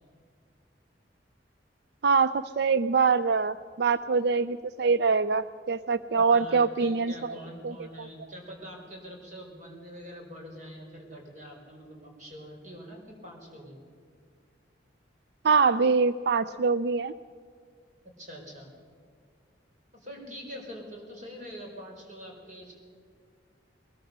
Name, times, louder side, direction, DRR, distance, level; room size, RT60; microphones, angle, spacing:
voice 1, 2.0-7.3 7.6-8.1 15.4-17.1, right 5 dB, 60° right, 14 dB, 0.4 m, -24 dB
voice 2, 6.1-13.8 18.2-18.8 19.9-22.7, equal, 40° right, 0 dB, 4.7 m, -44 dB
22.0 x 20.0 x 6.8 m, 2.1 s
head